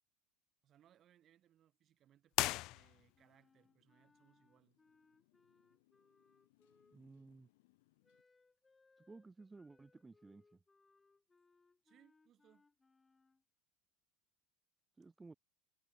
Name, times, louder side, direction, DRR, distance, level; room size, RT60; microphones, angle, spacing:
voice 1, 0.6-4.8 11.8-12.7, right 11 dB, 30° right, 6.1 m, -70 dB
sound 1, 2.3-3.4, left 20 dB, 45° left, 0.6 m, -38 dB
Motorcycle, 2.7-8.2, left 21 dB, 75° left, 7.5 m, -77 dB
Wind instrument woodwind instrument, 3.1-7.3 8.0-13.4, left 3 dB, 10° left, 5.5 m, -73 dB
voice 2, 6.9-7.5 9.1-10.4 15.0-15.3, right 3 dB, 10° right, 2.4 m, -56 dB
supercardioid pair, 160°, 0 cm